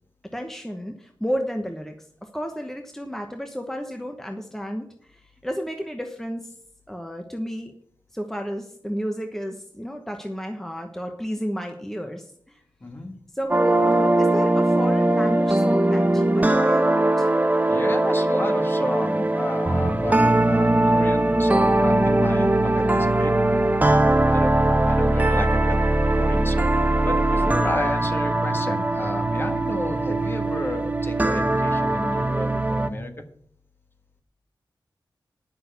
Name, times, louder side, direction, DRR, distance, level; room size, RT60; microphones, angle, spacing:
voice 1, 0.3-6.5 6.9-7.7 8.1-12.6 13.3-17.3 27.4-27.7, equal, 5° left, 4 dB, 1.1 m, -32 dB
voice 2, 12.8-13.1 17.7-23.7 24.3-25.8 26.1-26.7 27.0-33.1, left 1 dB, 25° left, 6 dB, 1.6 m, -32 dB
sound 1, 13.5-32.9, right 1 dB, 20° right, 0.8 m, -20 dB
10.5 x 6.3 x 8.0 m, 0.63 s
wide cardioid pair, 90°, 8 cm